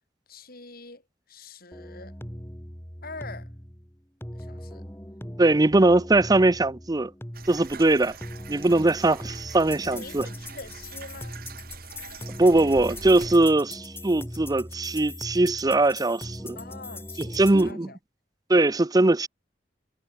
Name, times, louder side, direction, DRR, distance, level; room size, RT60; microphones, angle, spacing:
voice 1, 0.3-1.0 1.3-2.1 3.0-3.5 4.3-4.8 8.3-8.4 9.8-11.4 16.6-18.0, left 3 dB, 55° left, 6.0 m, -44 dB
sound 1, 1.7-17.7, left 1 dB, 15° left, 4.2 m, -40 dB
voice 2, 5.4-7.1 7.5-8.2 8.5-10.3 12.4-16.6 17.2-17.9 18.5-19.3, right 2 dB, 20° right, 0.6 m, -21 dB
sound 2, 7.3-13.5, right 5 dB, 55° right, 2.4 m, -45 dB
head